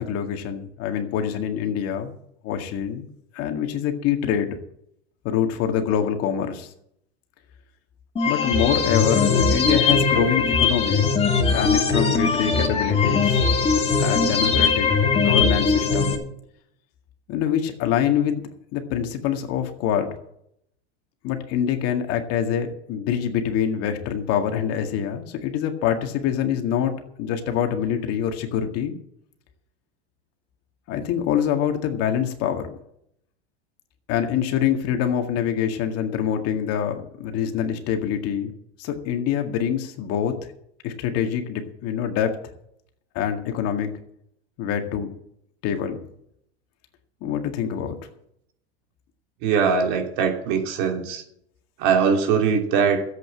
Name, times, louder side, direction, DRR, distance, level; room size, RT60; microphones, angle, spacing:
voice 1, 0.0-2.1 2.4-3.1 3.3-4.6 5.2-6.7 8.2-11.1 11.5-13.4 14.0-14.9 15.1-16.2 17.3-20.2 21.2-26.9 27.2-28.9 30.9-32.7 34.1-38.5 38.8-40.4 40.8-42.4 43.1-43.9 44.6-45.1 45.6-46.0 47.2-48.0, left 9 dB, 45° left, 5 dB, 2.0 m, -25 dB
sound 1, 8.2-16.2, left 5 dB, 20° left, 2.7 m, -20 dB
voice 2, 49.4-51.2 51.8-53.0, right 6 dB, 55° right, 2 dB, 3.0 m, -21 dB
13.0 x 8.2 x 7.6 m, 0.73 s
supercardioid pair, 125°, 33 cm